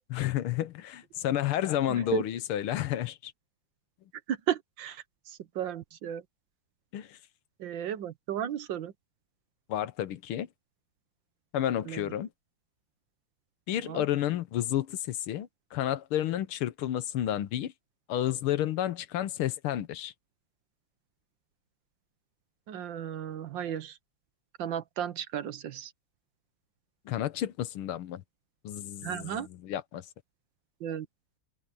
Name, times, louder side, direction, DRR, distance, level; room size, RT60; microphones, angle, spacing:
voice 1, 0.1-3.3 6.9-7.2 9.7-10.5 11.5-12.3 13.7-17.7 18.1-20.1 27.1-28.2 28.6-30.1, left 12 dB, 85° left, 1.8 m, -31 dB
voice 2, 4.3-5.0 5.5-6.2 7.6-8.9 11.9-12.1 13.9-14.1 22.7-23.9 24.6-25.9 29.0-29.5 30.8-31.1, right 9 dB, 65° right, 1.5 m, -34 dB
omnidirectional pair, 2.3 m